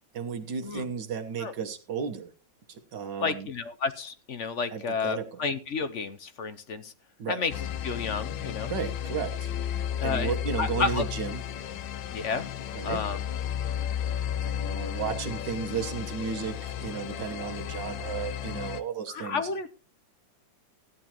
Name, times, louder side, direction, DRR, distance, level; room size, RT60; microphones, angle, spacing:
voice 1, 0.1-2.3 2.7-3.5 4.7-5.4 7.2-7.4 8.7-11.4 12.7-13.0 14.4-19.5, right 6 dB, 70° right, 7 dB, 1.8 m, -34 dB
voice 2, 3.2-6.9 7.3-7.5 7.8-8.7 10.0-11.0 12.1-12.5 12.8-13.2 19.1-19.7, left 5 dB, 55° left, 11 dB, 0.9 m, -31 dB
sound 1, 7.5-18.8, left 10 dB, 75° left, 1.5 m, -33 dB
15.5 x 10.5 x 3.0 m, 0.34 s
omnidirectional pair, 2.1 m